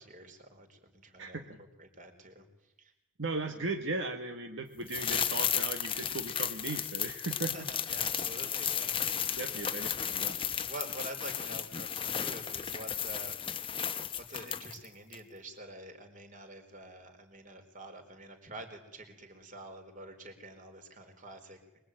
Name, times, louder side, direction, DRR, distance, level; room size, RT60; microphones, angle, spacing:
voice 1, 0.0-1.4 1.8-2.4 2.8-2.9 7.5-9.0 9.5-9.7 10.1-10.2 10.6-13.4 14.2-21.6, right 1 dB, 40° right, 5 dB, 4.0 m, -47 dB
voice 2, 1.2-1.6 3.2-7.7 9.4-10.4, right 3 dB, 65° right, 4 dB, 1.7 m, -37 dB
sound 1, 4.9-14.8 15.1-15.2, left 8 dB, 25° left, 1.0 m, -34 dB
24.0 x 23.0 x 9.1 m, 0.92 s
head